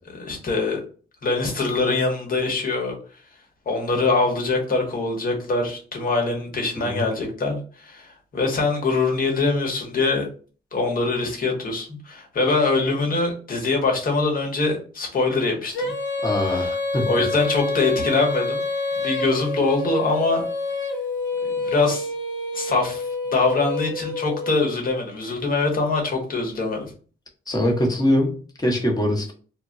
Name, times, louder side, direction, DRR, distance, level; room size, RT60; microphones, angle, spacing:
voice 1, 0.2-0.8 1.2-2.9 3.7-10.3 10.7-15.9 16.5-16.7 17.1-18.6 19.0-20.4 21.4-22.1 22.5-26.9, left 3 dB, 45° left, 1 dB, 1.1 m, -23 dB
Female singing, 15.7-24.5, left 2 dB, 65° left, 0.9 m, -27 dB
voice 2, 16.2-17.3 27.5-29.3, left 1 dB, 20° left, 0 dB, 1.0 m, -23 dB
2.2 x 2.1 x 3.8 m, 0.40 s
cardioid pair, 90°, 20 cm